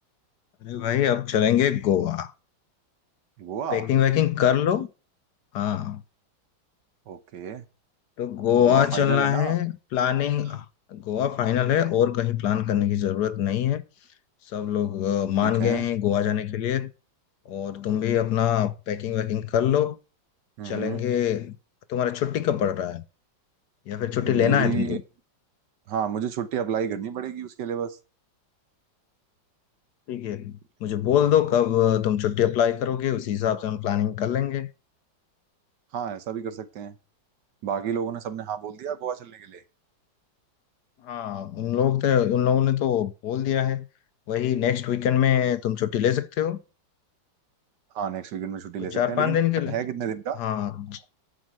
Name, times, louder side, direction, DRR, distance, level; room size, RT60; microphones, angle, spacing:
voice 1, 0.6-2.3 3.7-4.9 5.5-6.0 8.2-10.7 10.9-13.8 14.5-16.9 17.5-20.0 20.6-21.6 21.9-23.0 23.9-25.0 30.1-34.7 41.0-43.9 44.3-46.6 48.9-49.8 50.4-51.0, left 10 dB, 70° left, 1.2 m, -24 dB
voice 2, 3.4-3.9 7.1-7.6 8.5-9.6 15.4-15.9 20.6-21.0 24.2-25.0 25.9-28.0 35.9-36.9 37.6-39.6 47.9-49.4 49.7-50.4, right 8 dB, 70° right, 1.5 m, -31 dB
11.5 x 4.9 x 7.6 m
omnidirectional pair, 2.0 m